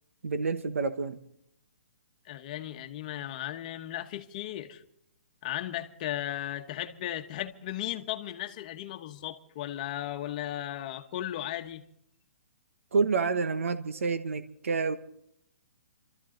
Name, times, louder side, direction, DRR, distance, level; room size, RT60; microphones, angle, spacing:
voice 1, 0.2-1.2 12.9-15.0, right 4 dB, 90° right, 1.2 m, -28 dB
voice 2, 2.2-4.8 5.4-11.8, left 12 dB, 35° left, 1.2 m, -36 dB
27.5 x 13.5 x 3.9 m
hypercardioid pair, 165°, 7 cm